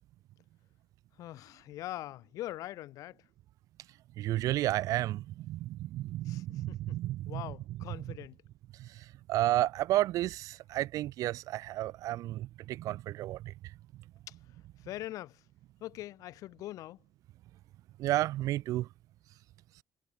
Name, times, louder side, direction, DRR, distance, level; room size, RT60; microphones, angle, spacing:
voice 1, 1.2-3.2 6.3-7.0 7.3-8.4 14.3-14.4 14.8-15.4 15.8-17.0, left 15 dB, 85° left, 0.5 m, -42 dB
voice 2, 4.2-7.8 8.0-8.1 8.8-13.5 18.0-18.9, right 15 dB, 85° right, 0.5 m, -32 dB
cardioid pair, 155°, 6 cm